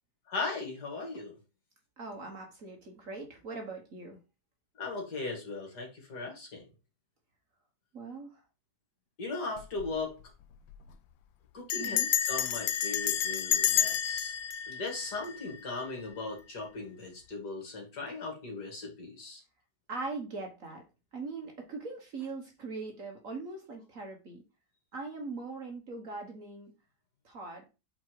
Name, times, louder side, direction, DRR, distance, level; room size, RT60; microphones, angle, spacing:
voice 1, 0.3-1.4 4.8-6.7 9.2-10.1 11.5-12.0 12.3-14.3 14.7-19.4, left 3 dB, 60° left, 1 dB, 2.7 m, -38 dB
voice 2, 2.0-4.2 7.9-8.4 11.7-12.1 19.9-20.8 21.1-24.4 24.9-26.7 27.2-27.6, right 3 dB, 45° right, 2 dB, 1.5 m, -41 dB
Bell, 9.6-9.9 10.2-10.3 10.5-10.9 11.7-15.8, left 10 dB, 80° left, 1.3 m, -30 dB
5.0 x 4.4 x 4.6 m, 0.30 s
omnidirectional pair, 2.0 m